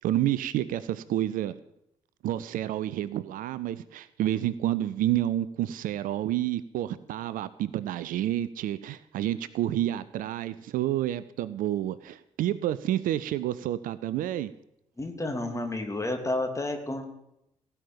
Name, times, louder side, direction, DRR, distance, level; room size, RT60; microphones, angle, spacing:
voice 1, 0.0-1.5 2.2-14.5, right 13 dB, 55° right, 17 dB, 0.5 m, -29 dB
voice 2, 15.0-17.0, left 2 dB, 15° left, 5 dB, 2.7 m, -31 dB
17.0 x 5.7 x 8.8 m, 0.81 s
figure-of-eight pair, 40°, 17 cm